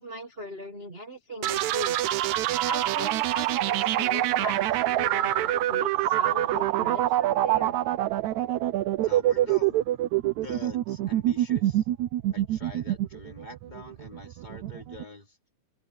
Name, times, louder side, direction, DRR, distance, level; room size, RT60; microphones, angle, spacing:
voice 1, 0.0-2.1 2.6-7.8, equal, 50° right, 0.6 m, -39 dB
sound 1, 1.4-15.0, right 14 dB, 70° right, 1.9 m, -26 dB
voice 2, 9.0-9.8 10.4-11.9 12.3-15.4, left 2 dB, 15° left, 3.0 m, -45 dB
open air
omnidirectional pair, 3.9 m